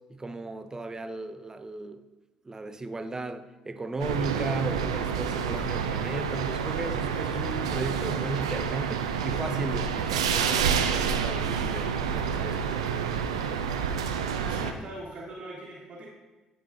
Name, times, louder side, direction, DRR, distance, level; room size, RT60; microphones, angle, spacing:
voice 1, 0.1-2.0 2.5-12.9, right 3 dB, 20° right, 10 dB, 0.5 m, -35 dB
sound 1, 4.0-14.7, right 7 dB, 85° right, 0.4 m, -28 dB
voice 2, 14.4-16.1, right 1 dB, 45° right, -6 dB, 1.3 m, -41 dB
9.4 x 4.6 x 2.6 m, 1.2 s
hypercardioid pair, 50°, 3 cm